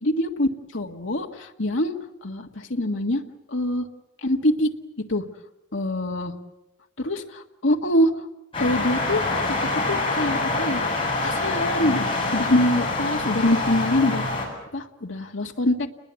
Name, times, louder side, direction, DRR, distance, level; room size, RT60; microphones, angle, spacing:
voice 1, 0.0-1.9 2.2-3.2 3.5-3.9 4.2-4.7 5.1-5.2 5.7-6.3 7.0-8.1 8.6-9.6 9.9-10.8 11.2-12.0 12.3-14.2 14.7-15.9, left 1 dB, 70° left, 3 dB, 1.7 m, -24 dB
sound 1, 8.5-14.5, left 2 dB, 25° left, 7.7 m, -25 dB
29.5 x 21.0 x 8.2 m, 0.90 s
head